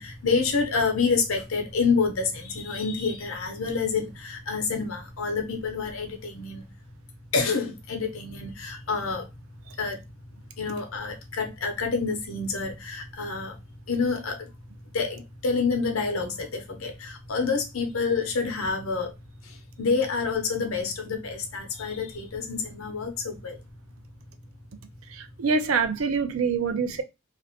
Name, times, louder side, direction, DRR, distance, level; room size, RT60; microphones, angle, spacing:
voice 1, 0.0-6.6 7.3-9.3 9.8-10.0 10.6-13.6 13.9-14.5 14.9-19.1 19.4-23.6 26.8-27.0, left 4 dB, 80° left, 0.7 m, -28 dB
voice 2, 25.1-27.0, right 5 dB, 75° right, 0.4 m, -25 dB
2.5 x 2.1 x 2.7 m
head